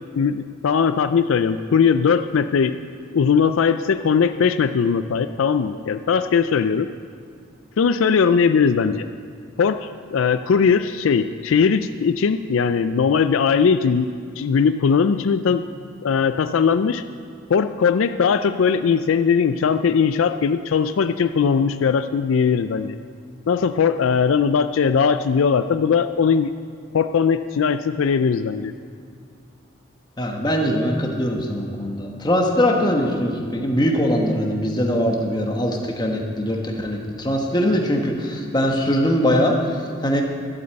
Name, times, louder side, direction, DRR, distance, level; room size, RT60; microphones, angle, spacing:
voice 1, 0.2-2.8 3.1-6.9 7.8-9.0 9.6-14.1 14.4-15.6 16.0-17.0 17.5-23.0 23.5-26.5 26.9-28.7, left 6 dB, 75° left, 10 dB, 0.4 m, -19 dB
voice 2, 30.2-39.5 40.0-40.2, equal, 20° left, 1 dB, 1.3 m, -21 dB
12.0 x 8.1 x 7.7 m, 2.4 s
head